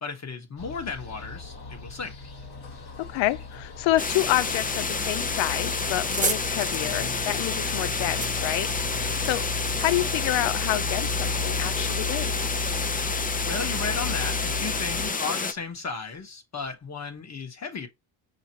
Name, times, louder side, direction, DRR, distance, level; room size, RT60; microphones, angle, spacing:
voice 1, 0.0-2.2 13.4-17.9, left 4 dB, 35° left, 1.4 m, -34 dB
sound 1, 0.6-15.1, left 3 dB, 55° left, 1.6 m, -34 dB
voice 2, 3.0-8.7 9.2-9.5 9.8-12.3, left 16 dB, 80° left, 0.6 m, -28 dB
sound 2, 4.0-15.5, left 4 dB, 20° left, 0.6 m, -29 dB
sound 3, 6.1-9.4, right 4 dB, 15° right, 0.7 m, -33 dB
5.6 x 2.9 x 2.9 m
supercardioid pair, 75°, 45 cm